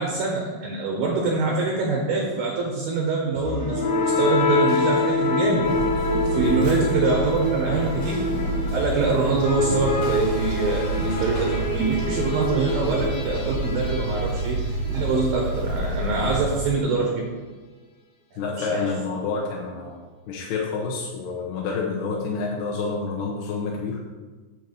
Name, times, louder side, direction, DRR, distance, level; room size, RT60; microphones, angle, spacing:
voice 1, 0.0-8.3 8.7-14.6 14.9-17.1 18.6-18.8, right 4 dB, 85° right, -1 dB, 2.0 m, -24 dB
sound 1, 3.3-15.2, left 2 dB, 50° left, 2.7 m, -26 dB
sound 2, 5.6-16.7, right 2 dB, 65° right, 2.7 m, -29 dB
voice 2, 6.4-6.7 18.4-24.0, left 4 dB, 75° left, -2 dB, 2.6 m, -28 dB
8.0 x 4.7 x 7.0 m, 1.3 s
omnidirectional pair, 5.8 m